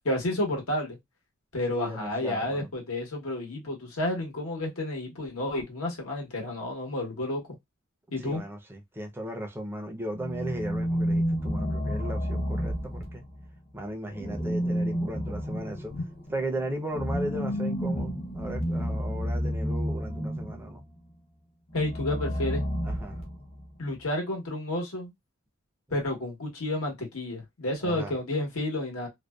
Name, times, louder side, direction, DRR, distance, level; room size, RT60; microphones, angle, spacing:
voice 1, 0.0-1.0 1.5-7.4 8.1-8.4 15.9-16.0 21.7-22.7 23.8-25.1 25.9-29.1, left 1 dB, 75° left, 1.1 m, -31 dB
voice 2, 1.7-2.7 8.2-13.2 13.7-15.9 16.3-20.8 22.8-23.2 27.8-28.1, right 1 dB, 10° right, 0.5 m, -36 dB
sound 1, 10.1-13.5 14.1-20.7 21.7-23.7, equal, 30° left, 0.6 m, -30 dB
2.6 x 2.2 x 2.2 m
head